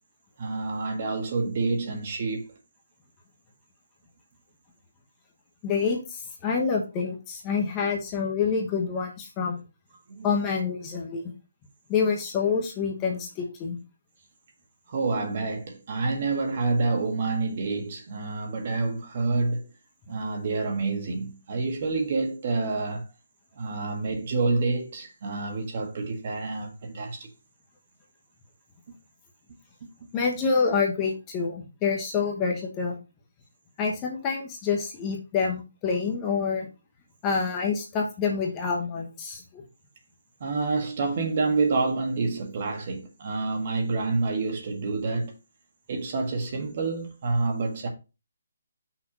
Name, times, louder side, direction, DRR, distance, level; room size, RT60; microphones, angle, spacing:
voice 1, 0.4-2.4 10.1-10.3 14.9-19.7 20.1-23.0 23.5-27.3 40.4-45.3 45.9-47.9, right 3 dB, 40° right, 1.6 m, -28 dB
voice 2, 5.6-9.6 10.2-11.3 11.9-13.8 30.1-33.0 33.8-36.7 37.2-39.6, left 5 dB, 15° left, 1.0 m, -27 dB
6.0 x 3.4 x 5.9 m
hypercardioid pair, 165°, 0 cm